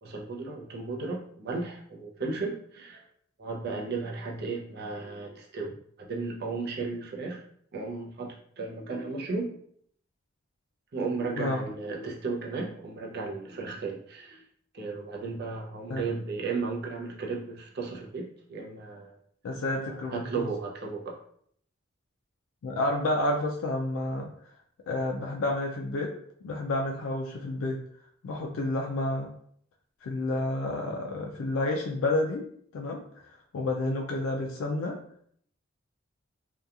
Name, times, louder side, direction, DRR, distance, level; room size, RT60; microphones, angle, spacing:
voice 1, 0.0-3.0 3.4-7.4 7.7-9.5 10.9-14.5 14.7-19.2 19.9-21.2, right 4 dB, 55° right, 0 dB, 0.5 m, -35 dB
voice 2, 19.4-20.5 22.6-24.3 24.9-26.1 26.4-27.8 28.2-29.3 30.0-32.5 32.7-33.0 33.5-35.0, left 2 dB, 85° left, 1 dB, 0.4 m, -30 dB
2.8 x 2.2 x 2.4 m, 0.63 s
head